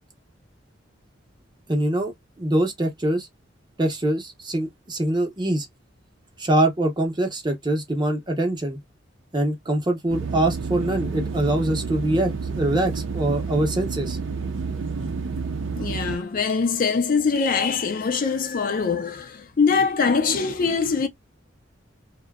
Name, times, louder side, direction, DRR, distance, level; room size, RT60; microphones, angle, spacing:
voice 1, 1.7-2.1 2.4-3.3 3.8-5.7 6.4-8.8 9.3-14.2, right 1 dB, 25° right, 0.7 m, -24 dB
sound 1, 10.1-16.2, right 4 dB, 80° right, 0.5 m, -29 dB
voice 2, 15.8-21.1, left 5 dB, 45° left, 0.4 m, -23 dB
2.7 x 2.2 x 2.2 m
head